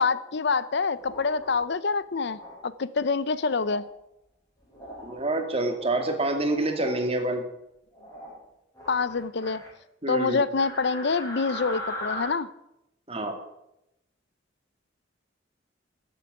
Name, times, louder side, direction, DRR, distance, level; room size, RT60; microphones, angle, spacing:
voice 1, 0.0-3.8 8.9-9.6 10.1-12.5, left 4 dB, 65° left, 16 dB, 0.6 m, -26 dB
sound 1, 1.0-1.5 2.2-2.6 3.3-3.8 4.7-5.1 5.6-6.2 6.5-6.9 7.9-8.4 8.7-9.7 10.6-12.3, left 1 dB, 20° left, 6.0 m, -39 dB
voice 2, 5.0-7.4 10.0-10.4 13.1-13.4, right 2 dB, 30° right, 5 dB, 2.3 m, -27 dB
13.0 x 8.4 x 9.4 m, 0.85 s
head